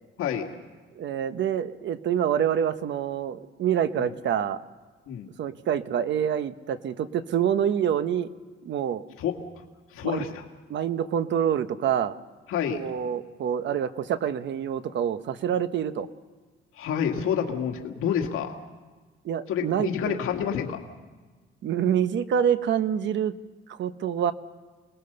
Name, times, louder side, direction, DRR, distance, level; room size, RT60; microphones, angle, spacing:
voice 1, 1.0-4.6 5.4-8.3 8.6-9.0 10.0-10.3 10.7-12.1 12.7-16.1 19.2-20.2 21.6-23.3 23.7-24.3, right 9 dB, 60° right, 12 dB, 1.0 m, -26 dB
voice 2, 9.9-10.4 12.5-12.9 16.7-18.6 19.5-20.8, left 8 dB, 80° left, 3 dB, 2.0 m, -28 dB
27.0 x 20.0 x 6.8 m, 1.4 s
cardioid pair, 145°, 21 cm